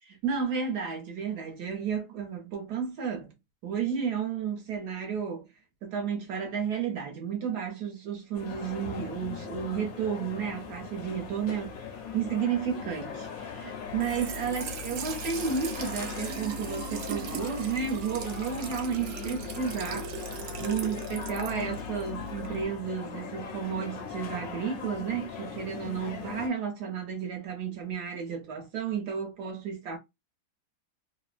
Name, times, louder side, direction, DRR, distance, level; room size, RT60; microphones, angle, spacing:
voice 1, 0.1-3.3 3.6-5.5 5.8-11.8 12.1-20.1 20.6-30.0, right 7 dB, 65° right, 1.2 m, -32 dB
sound 1, 8.3-26.5, left 6 dB, 75° left, 0.8 m, -40 dB
Trickle dribble / Fill (with liquid), 13.9-22.6, right 3 dB, 80° right, 1.3 m, -38 dB
3.2 x 2.0 x 2.4 m
omnidirectional pair, 2.2 m